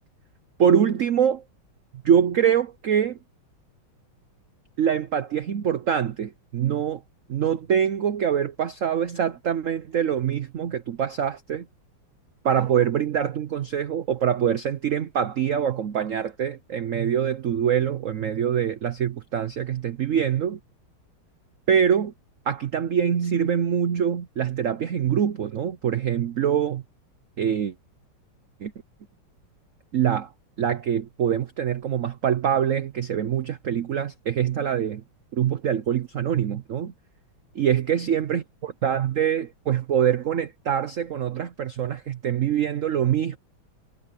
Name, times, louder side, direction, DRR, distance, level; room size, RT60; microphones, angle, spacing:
voice 1, 0.6-1.4 2.0-3.2 4.8-7.0 7.3-11.7 12.4-20.6 21.7-22.1 22.5-26.8 27.4-27.7 28.6-28.7 29.9-30.3 30.6-35.0 35.3-36.9 37.5-43.4, right 8 dB, 75° right, 0.7 m, -24 dB
omnidirectional pair, 2.3 m